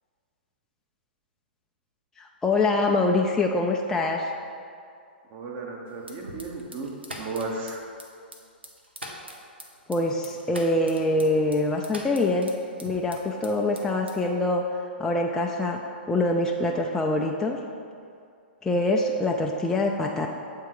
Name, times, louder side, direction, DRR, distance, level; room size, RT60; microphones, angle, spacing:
voice 1, 2.2-4.3 9.9-12.5 12.8-14.6 15.0-15.8 16.1-17.6 18.6-20.3, left 2 dB, 10° left, 0 dB, 0.4 m, -24 dB
voice 2, 5.3-7.8, right 3 dB, 35° right, 0 dB, 1.1 m, -34 dB
sound 1, 6.0-13.5 13.8-14.4, right 1 dB, 90° right, 0.8 m, -42 dB
7.9 x 3.7 x 4.7 m, 2.4 s
figure-of-eight pair, 115°, 6 cm